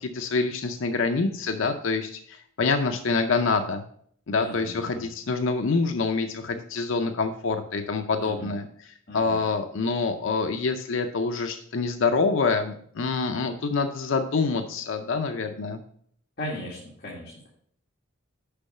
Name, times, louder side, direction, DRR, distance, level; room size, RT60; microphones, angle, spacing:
voice 1, 0.0-3.8 4.3-15.8, left 4 dB, 70° left, 6 dB, 0.5 m, -26 dB
voice 2, 4.4-5.1 8.2-8.5 9.1-9.4 16.4-17.5, equal, 50° left, -6 dB, 1.8 m, -37 dB
6.8 x 5.4 x 5.4 m, 0.63 s
head